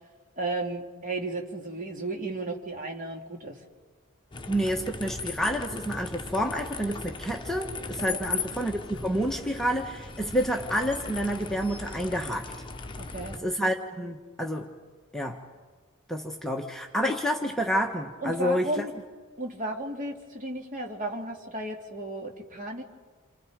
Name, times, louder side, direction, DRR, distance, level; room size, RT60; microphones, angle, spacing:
voice 1, 0.4-3.6 8.1-8.3 13.0-13.4 18.2-18.9 19.4-22.8, right 2 dB, 40° right, 1 dB, 3.0 m, -34 dB
sound 1, 4.3-13.4, left 4 dB, 20° left, 1.1 m, -38 dB
voice 2, 4.5-12.5 13.4-14.7 15.1-15.4 16.1-18.8, equal, ahead, 1 dB, 1.3 m, -29 dB
28.5 x 28.5 x 5.2 m, 1.4 s
head